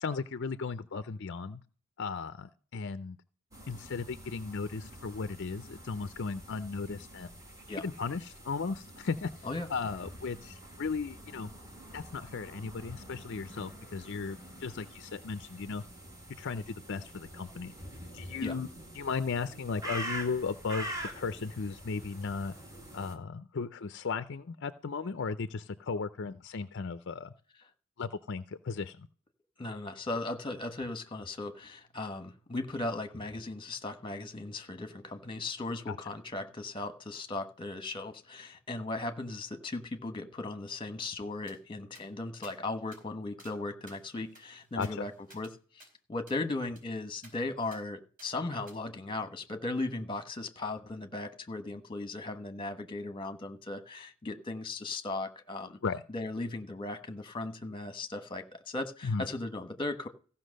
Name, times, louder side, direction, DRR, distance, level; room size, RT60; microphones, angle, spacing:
voice 1, 0.0-1.6 2.0-3.2 3.7-7.3 7.8-11.5 11.9-15.8 16.4-17.7 18.1-18.7 18.9-20.9 21.1-22.5 22.9-27.3 28.0-29.1 35.9-36.0 44.8-45.0 55.8-56.0 59.0-59.2, left 4 dB, 55° left, 12 dB, 0.5 m, -36 dB
sound 1, 3.5-23.2, right 1 dB, 15° right, 1.9 m, -46 dB
voice 2, 29.6-55.8 56.1-60.1, left 2 dB, 20° left, 9 dB, 1.2 m, -37 dB
sound 2, 41.5-41.6 41.9-42.1 42.4-42.6 42.9-43.0 43.4-43.6 43.9-45.5 45.8-45.9 46.3-46.4 46.8-46.9 47.2-47.3 47.7-47.8 48.2-48.3 48.7-48.8, right 2 dB, 40° right, 4.6 m, -56 dB
15.0 x 5.8 x 6.4 m, 0.42 s
head